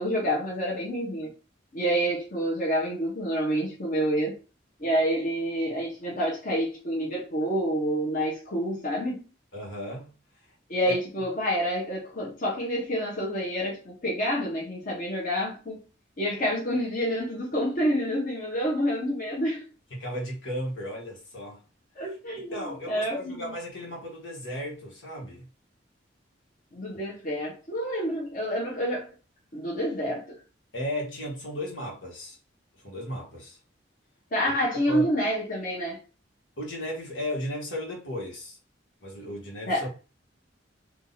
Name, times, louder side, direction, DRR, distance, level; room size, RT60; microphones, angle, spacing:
voice 1, 0.0-1.3 1.7-4.4 4.8-9.2 10.7-15.8 16.2-19.6 22.0-23.4 26.7-29.1 29.5-30.3 34.3-36.0 39.7-39.9, equal, 50° left, 1.4 m, -28 dB
voice 2, 9.5-10.1 10.8-10.9 19.9-21.6 22.4-25.5 30.7-32.4 32.8-33.6 34.9-35.1 36.6-38.6 39.0-40.0, left 1 dB, 80° left, 1.8 m, -35 dB
3.8 x 2.8 x 4.1 m
head